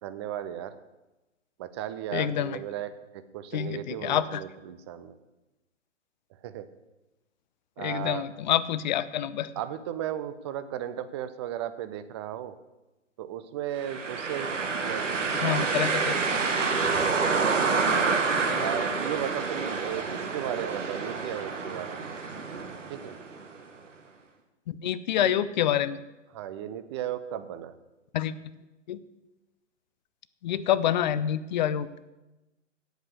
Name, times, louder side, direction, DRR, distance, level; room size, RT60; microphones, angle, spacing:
voice 1, 0.0-0.8 1.6-5.2 6.3-6.7 7.8-8.3 9.6-12.6 13.2-14.5 14.8-16.2 17.0-17.2 18.6-22.1 22.9-23.2 25.2-25.4 26.3-27.7, right 10 dB, 25° right, 13 dB, 0.5 m, -36 dB
voice 2, 2.1-2.6 3.5-4.4 7.8-9.5 15.4-16.2 18.4-18.6 24.7-26.0 28.1-28.3 28.9-29.0 30.4-31.9, left 11 dB, 40° left, 15 dB, 0.6 m, -27 dB
sound 1, 13.8-23.6, right 4 dB, 80° right, 1.5 m, -28 dB
8.5 x 8.1 x 8.1 m, 1.0 s
figure-of-eight pair, 120°, 37 cm